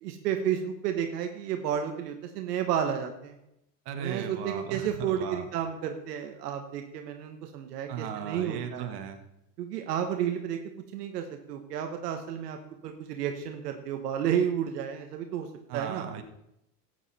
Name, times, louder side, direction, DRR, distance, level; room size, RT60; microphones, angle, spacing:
voice 1, 0.0-3.4 4.0-8.9 9.6-10.6 10.9-15.5 15.7-16.0, right 9 dB, 85° right, 5 dB, 1.2 m, -31 dB
voice 2, 3.8-5.4 7.9-9.2 15.7-16.2, right 8 dB, 55° right, 5 dB, 1.7 m, -36 dB
12.5 x 8.4 x 4.1 m, 0.82 s
supercardioid pair, 100°, 46 cm